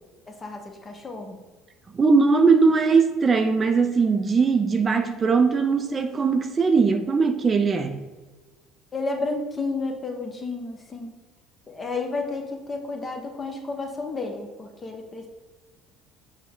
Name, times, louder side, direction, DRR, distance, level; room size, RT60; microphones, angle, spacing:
voice 1, 0.3-1.4 8.9-11.1 11.7-15.3, left 3 dB, 25° left, 3 dB, 0.9 m, -31 dB
voice 2, 1.9-8.0, right 4 dB, 35° right, 6 dB, 0.4 m, -20 dB
5.9 x 2.2 x 3.6 m, 1.3 s
hypercardioid pair, 70°, 0 cm